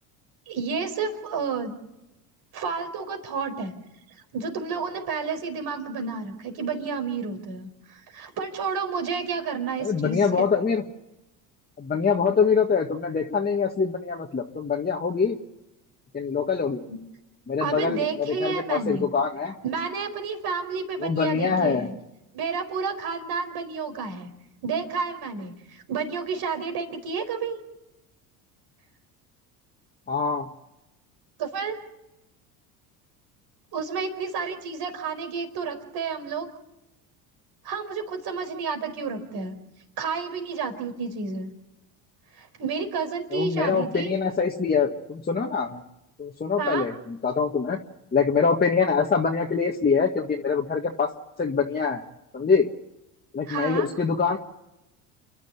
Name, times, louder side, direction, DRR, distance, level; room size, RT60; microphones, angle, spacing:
voice 1, 0.5-1.7 2.5-3.7 4.3-10.5 16.9-17.0 17.6-19.1 19.6-21.9 22.3-24.3 24.6-27.6 31.4-31.8 33.7-36.5 37.6-39.5 40.0-41.5 42.3-44.1 46.6-46.9 53.5-53.9, right 5 dB, 55° right, 5 dB, 4.9 m, -30 dB
voice 2, 9.8-10.8 11.8-15.4 16.1-16.8 17.5-19.6 21.0-21.9 30.1-30.5 43.3-45.8 46.2-47.8 48.1-51.1 51.4-52.0 52.3-52.7 53.3-54.4, left 5 dB, 20° left, 0 dB, 1.8 m, -24 dB
29.0 x 11.5 x 9.7 m, 0.94 s
supercardioid pair, 85°, 44 cm